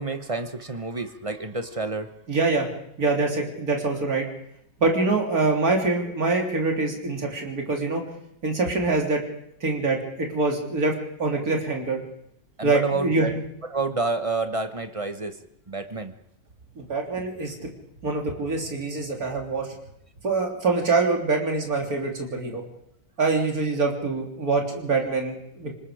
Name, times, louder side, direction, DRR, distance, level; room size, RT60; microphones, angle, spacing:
voice 1, 0.0-2.1 12.6-13.4 13.7-15.4 15.7-16.1, right 3 dB, 25° right, 8 dB, 0.7 m, -29 dB
voice 2, 2.3-2.7 3.0-4.3 4.8-8.0 8.4-9.2 9.6-10.9 11.2-12.0 12.6-13.4 16.8-17.7 18.0-19.7 20.2-22.6 23.2-25.7, right 3 dB, 50° right, 1 dB, 3.7 m, -24 dB
27.0 x 19.5 x 5.0 m, 0.75 s
omnidirectional pair, 2.0 m